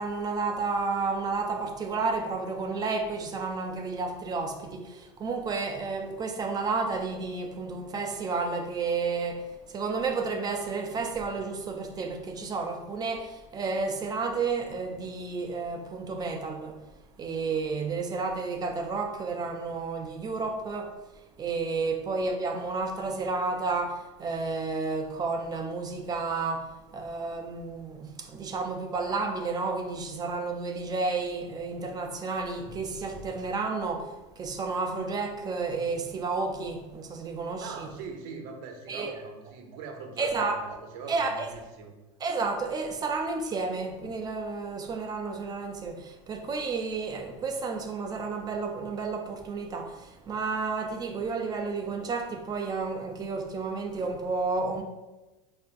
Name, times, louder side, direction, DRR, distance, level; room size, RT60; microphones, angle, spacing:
voice 1, 0.0-16.8 17.2-20.9 21.4-34.1 34.4-37.9 38.9-39.1 40.2-40.6 41.1-41.5 42.2-54.8, right 4 dB, 20° right, 0.4 m, -31 dB
voice 2, 37.6-42.0, right 5 dB, 65° right, 0.7 m, -42 dB
5.5 x 2.4 x 2.5 m
supercardioid pair, 140°, 18 cm